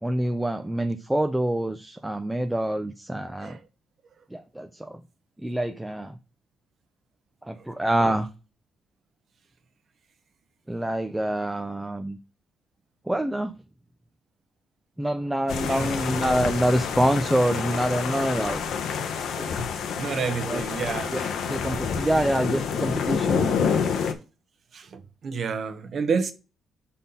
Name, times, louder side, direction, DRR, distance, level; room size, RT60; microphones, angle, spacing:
voice 1, 0.0-3.6 4.3-5.0 5.4-6.1 7.4-8.3 10.7-12.2 13.1-13.5 15.0-18.6 19.4-19.6 20.5-20.6 21.1-21.2 21.5-23.8, right 1 dB, 5° right, 0.4 m, -26 dB
sound 1, 15.5-24.1, left 6 dB, 70° left, 0.9 m, -28 dB
voice 2, 15.6-16.0 20.0-21.5 22.1-22.3 24.7-26.3, right 5 dB, 45° right, 1.0 m, -30 dB
5.5 x 4.2 x 5.4 m
cardioid pair, 135°, 0 cm